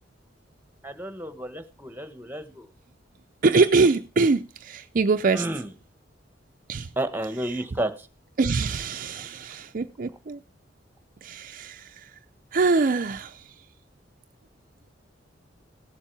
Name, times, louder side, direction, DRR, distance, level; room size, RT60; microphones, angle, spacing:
voice 1, 0.8-2.7 5.3-5.7 7.0-7.9, right 1 dB, 10° right, 1.2 m, -31 dB
voice 2, 3.4-5.5 6.7-6.9 8.4-10.4 11.2-12.1 12.5-13.4, right 4 dB, 45° right, 0.5 m, -23 dB
16.5 x 7.3 x 4.7 m
head